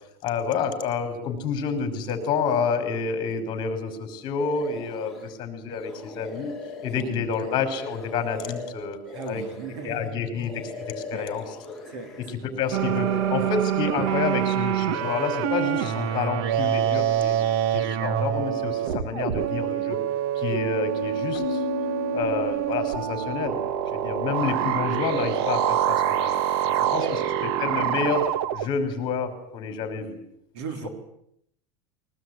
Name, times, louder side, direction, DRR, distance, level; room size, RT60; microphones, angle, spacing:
voice 1, 0.2-6.5 6.8-9.0 9.3-9.4 9.8-11.7 12.2-17.3 17.7-20.0 20.4-21.6 22.1-23.6 23.9-26.4 26.6-28.2 28.5-30.2 30.8-30.9, left 5 dB, 30° left, 6 dB, 5.3 m, -29 dB
sound 1, 4.4-5.3 5.7-12.3 12.6-14.6 14.9-16.3, left 4 dB, ahead, 4.3 m, -40 dB
voice 2, 7.0-7.3 9.1-10.2 11.1-11.3 11.9-12.7 26.8-27.1 30.5-30.9, right 5 dB, 80° right, 8 dB, 3.6 m, -38 dB
sound 2, 12.7-28.7, right 10 dB, 65° right, 1.4 m, -26 dB
Keyboard (musical), 21.3-23.2, left 15 dB, 80° left, 1.1 m, -35 dB
22.5 x 19.5 x 9.7 m, 0.74 s
supercardioid pair, 170°, 14 cm